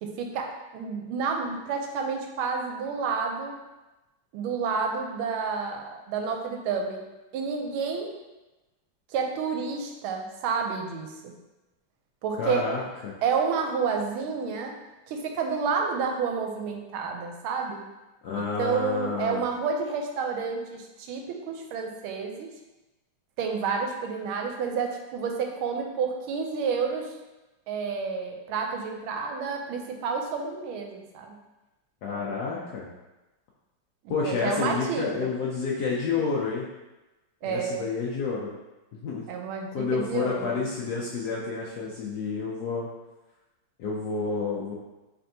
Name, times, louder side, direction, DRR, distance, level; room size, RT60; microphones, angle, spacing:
voice 1, 0.0-3.6 4.3-7.0 7.3-8.1 9.1-11.3 12.2-12.7 13.2-14.8 15.1-17.8 18.4-22.5 23.4-27.1 27.7-31.3 32.1-32.4 34.0-35.3 37.4-37.9 39.3-40.6, right 5 dB, 90° right, 3 dB, 1.5 m, -30 dB
voice 2, 12.4-13.1 18.2-19.4 32.0-32.9 34.1-36.7 37.4-38.5 38.9-39.3 39.7-42.9 43.8-44.7, left 4 dB, 75° left, -5 dB, 0.9 m, -29 dB
4.4 x 3.4 x 2.6 m, 1.1 s
omnidirectional pair, 2.3 m